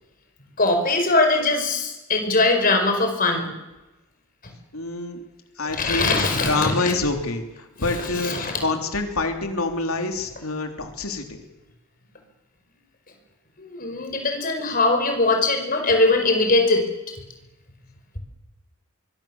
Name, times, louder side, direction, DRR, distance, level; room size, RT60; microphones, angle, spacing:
voice 1, 0.6-3.5 4.4-4.5 5.7-6.9 7.8-8.6 13.6-16.8, left 2 dB, 40° left, 5 dB, 5.2 m, -21 dB
voice 2, 4.7-5.2 5.6-6.1 6.4-7.4 7.8-11.4, left 3 dB, 85° left, 5 dB, 3.3 m, -26 dB
24.5 x 22.0 x 7.3 m, 1.0 s
head